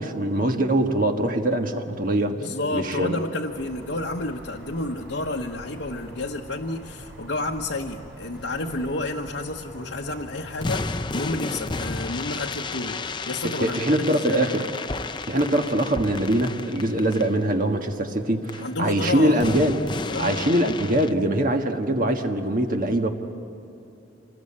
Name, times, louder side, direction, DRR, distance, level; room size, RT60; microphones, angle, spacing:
voice 1, 0.0-2.4 2.7-3.2 13.4-14.6 15.3-19.8 20.2-23.1, right 1 dB, 45° right, 4 dB, 1.5 m, -23 dB
voice 2, 2.3-14.5 18.6-19.7 20.1-20.5, left 2 dB, 75° left, -3 dB, 1.2 m, -30 dB
sound 1, 3.5-10.6, right 1 dB, 65° right, 5.4 m, -44 dB
sound 2, 8.4-9.4 9.7-9.8 10.6-17.4 18.5-18.7 19.4-21.1, left 3 dB, 25° left, 0.6 m, -32 dB
27.0 x 20.5 x 8.7 m, 3.0 s
head